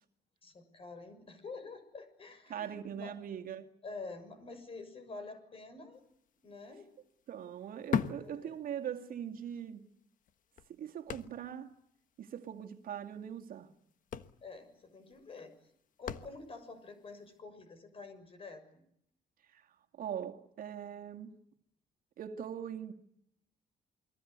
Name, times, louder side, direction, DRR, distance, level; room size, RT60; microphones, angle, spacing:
voice 1, 0.4-3.1 3.8-6.1 6.4-6.9 8.2-8.6 14.4-15.5 16.0-18.8, left 3 dB, 35° left, 6.6 m, -48 dB
voice 2, 2.5-3.7 7.3-9.9 10.7-11.7 12.2-13.7 19.5-19.7 19.9-21.4 22.2-22.9, right 9 dB, 60° right, 2.3 m, -41 dB
sound 1, 6.1-6.3 6.5-9.2 9.5-9.6 10.2-11.7 12.0-12.1 12.4-12.6 13.5-13.6 13.9-16.7 17.3-17.4, left 7 dB, 55° left, 1.4 m, -39 dB
29.0 x 22.0 x 8.2 m
cardioid pair, 145°, 17 cm